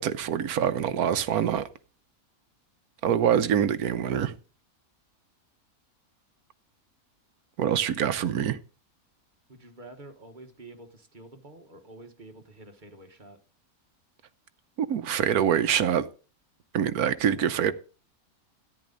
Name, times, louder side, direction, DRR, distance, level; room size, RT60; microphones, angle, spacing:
voice 1, 0.0-1.7 3.0-4.3 7.6-8.6 14.8-16.1 16.7-17.7, right 9 dB, 85° right, 1.3 m, -25 dB
voice 2, 9.5-13.4, right 2 dB, 35° right, 1.5 m, -48 dB
13.5 x 10.0 x 4.0 m
omnidirectional pair, 1.5 m